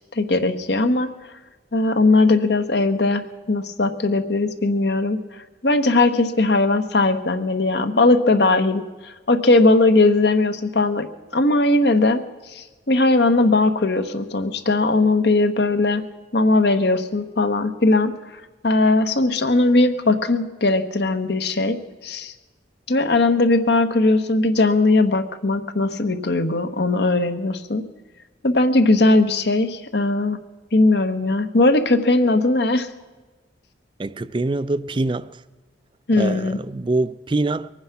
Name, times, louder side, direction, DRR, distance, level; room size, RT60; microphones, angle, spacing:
voice 1, 0.1-1.1 1.7-5.2 5.6-11.1 11.3-12.2 12.5-16.0 16.3-18.1 18.6-21.8 22.0-22.3 22.9-27.8 28.4-30.4 30.7-32.9 36.1-36.6, left 2 dB, 65° left, 1.1 m, -19 dB
voice 2, 34.0-35.4 36.2-37.7, right 2 dB, 25° right, 0.4 m, -24 dB
23.0 x 9.6 x 5.8 m
head